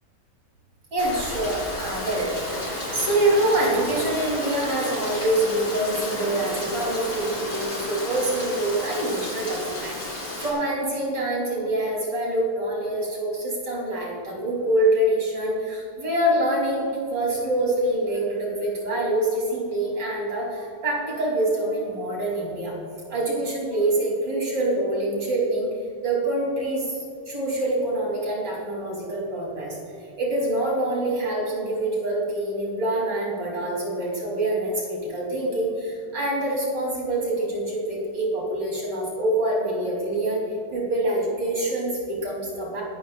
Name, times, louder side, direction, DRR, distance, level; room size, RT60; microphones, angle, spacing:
voice 1, 0.9-22.7 23.1-25.7 26.0-29.8 30.2-40.4 40.7-42.8, right 1 dB, 85° right, -4 dB, 4.4 m, -25 dB
Rain, 1.0-10.5, left 1 dB, 60° left, 4.1 m, -32 dB
21.5 x 13.5 x 2.5 m, 2.4 s
omnidirectional pair, 1.9 m